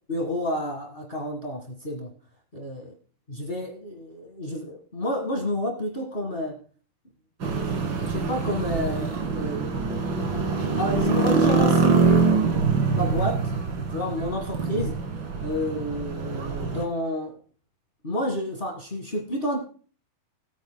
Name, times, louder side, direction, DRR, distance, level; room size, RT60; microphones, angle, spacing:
voice 1, 0.1-2.1 2.5-2.9 3.3-6.6 8.1-9.8 10.8-13.4 13.9-15.0 15.4-17.3 18.0-19.6, left 1 dB, 55° left, 0 dB, 0.6 m, -30 dB
sound 1, 7.4-16.8, right 4 dB, 50° right, 1.4 m, -24 dB
19.0 x 8.8 x 2.2 m, 0.41 s
omnidirectional pair, 4.3 m